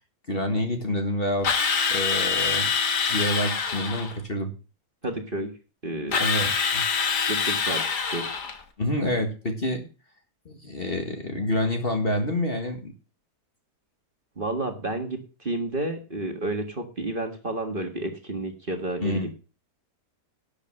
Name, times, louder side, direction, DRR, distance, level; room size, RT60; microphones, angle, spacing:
voice 1, 0.3-1.6 1.9-2.7 3.1-4.5 6.2-6.8 8.8-9.9 10.5-12.9 19.0-19.3, left 1 dB, 35° left, 4 dB, 1.8 m, -27 dB
Drill, 1.4-4.1 6.1-8.6, left 6 dB, 70° left, 2.1 m, -25 dB
voice 2, 5.0-5.5 5.8-6.2 7.3-8.3 14.4-19.3, right 2 dB, 30° right, 4 dB, 1.8 m, -31 dB
12.0 x 6.9 x 6.4 m, 0.34 s
omnidirectional pair, 1.9 m